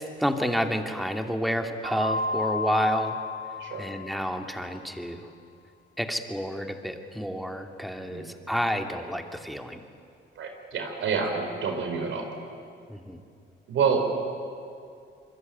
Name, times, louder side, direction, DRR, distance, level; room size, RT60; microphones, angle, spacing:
voice 1, 0.0-3.2 3.8-5.3 6.0-9.9 12.9-13.2, equal, ahead, 5 dB, 2.6 m, -29 dB
Mallet percussion, 1.8-4.5, left 3 dB, 60° right, 6.3 m, -32 dB
voice 2, 7.9-8.3 10.4-12.3 13.7-14.1, right 5 dB, 75° right, 4 dB, 4.7 m, -28 dB
26.5 x 23.0 x 9.4 m, 2.4 s
cardioid pair, 90°, 20 cm